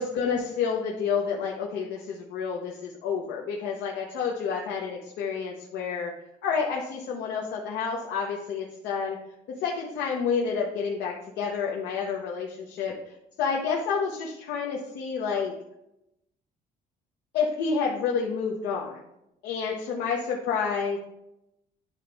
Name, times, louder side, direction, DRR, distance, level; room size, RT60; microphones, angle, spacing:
voice 1, 0.0-6.1 6.4-9.2 9.5-15.5 17.3-19.0 19.4-21.0, left 6 dB, 85° left, -1 dB, 0.9 m, -29 dB
10.0 x 3.9 x 3.4 m, 0.85 s
cardioid pair, 110°, 17 cm